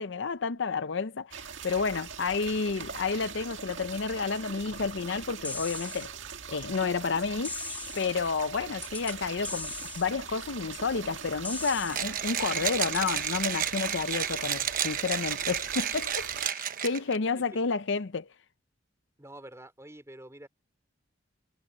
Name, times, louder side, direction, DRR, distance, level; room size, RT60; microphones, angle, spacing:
voice 1, 0.0-6.1 6.5-18.3, left 4 dB, 65° left, 0.6 m, -31 dB
sound 1, 1.3-16.5, right 6 dB, 70° right, 1.9 m, -42 dB
sound 2, 5.4-6.1 7.4-8.1 8.8-9.2 9.4-10.1 11.4-12.1 12.8-13.2, left 3 dB, 10° left, 0.9 m, -38 dB
Mechanisms, 11.9-17.2, right 9 dB, 45° right, 1.1 m, -31 dB
voice 2, 19.2-20.5, right 1 dB, 15° right, 4.8 m, -47 dB
head